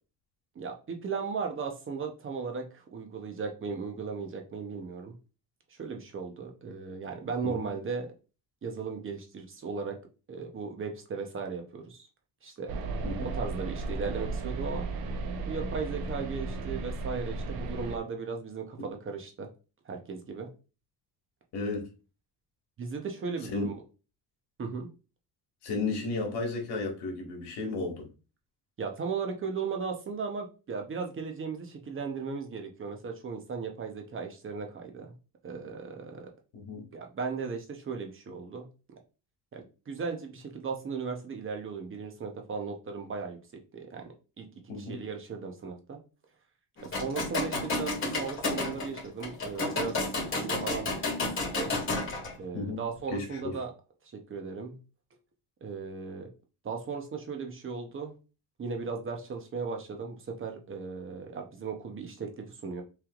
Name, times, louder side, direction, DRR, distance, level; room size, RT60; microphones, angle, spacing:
voice 1, 0.5-5.1 5.7-8.1 8.6-10.0 10.3-12.0 12.4-12.7 13.2-14.9 15.5-19.5 19.8-20.5 22.8-23.7 24.6-24.9 28.8-35.1 35.4-36.3 36.9-38.7 39.5-43.4 43.7-46.0 46.8-50.0 50.3-50.9 51.4-51.7 52.3-53.7 54.3-54.8 55.6-56.3 56.6-58.1 58.6-62.8, right 5 dB, 30° right, 3 dB, 0.8 m, -36 dB
sound 1, 12.7-18.0, right 3 dB, 65° right, 0.9 m, -34 dB
voice 2, 21.5-21.8 23.5-23.7 25.6-28.1 36.5-36.9 44.7-45.0 52.5-53.5, left 3 dB, 75° left, 1 dB, 1.9 m, -34 dB
sound 2, 46.8-52.3, left 2 dB, 30° left, 1.9 m, -31 dB
6.0 x 3.4 x 2.4 m, 0.33 s
cardioid pair, 140°, 40 cm